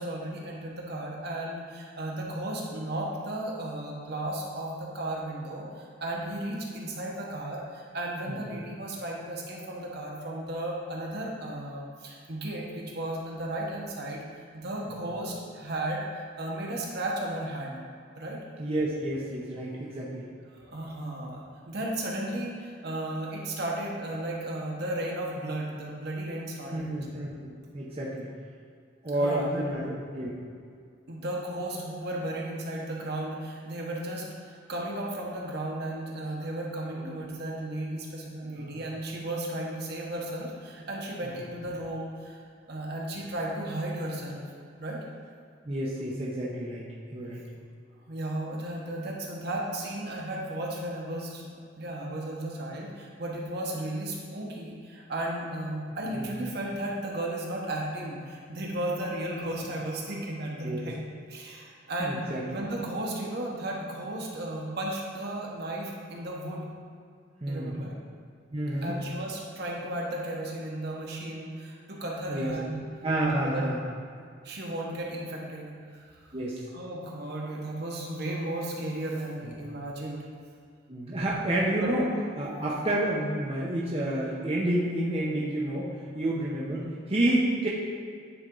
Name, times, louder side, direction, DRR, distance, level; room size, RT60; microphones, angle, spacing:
voice 1, 0.0-17.8 18.2-18.4 20.5-27.0 29.1-29.8 31.1-42.4 42.7-44.4 44.8-45.0 48.1-51.5 51.8-66.7 67.5-67.9 68.8-72.8 73.4-73.6 74.4-76.3 76.7-80.3 81.7-81.9 86.7-86.9, right 1 dB, 55° right, -2 dB, 1.2 m, -34 dB
voice 2, 18.6-20.2 26.7-28.3 29.0-30.3 36.9-37.1 38.5-38.8 45.6-46.8 47.1-47.4 56.1-56.3 60.6-60.9 62.0-62.5 67.4-67.7 68.5-69.0 72.3-72.6 73.0-73.8 76.3-76.6 80.9-82.1 82.4-87.7, right 1 dB, 30° right, -5 dB, 0.7 m, -29 dB
9.6 x 4.2 x 3.8 m, 2.2 s
head